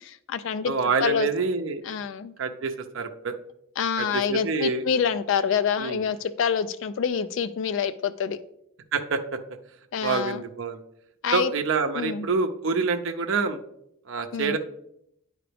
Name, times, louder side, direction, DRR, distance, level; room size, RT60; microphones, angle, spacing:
voice 1, 0.0-0.7 1.0-1.3 1.8-2.3 3.8-8.4 9.9-10.4 11.2-11.5 11.9-12.3 14.3-14.6, left 7 dB, 65° left, 13 dB, 0.3 m, -26 dB
voice 2, 0.6-1.8 2.4-3.4 4.0-4.8 5.8-6.0 8.9-9.4 10.0-10.8 11.3-13.6 14.1-14.6, right 4 dB, 65° right, 5 dB, 0.6 m, -26 dB
9.8 x 4.9 x 3.4 m, 0.78 s
head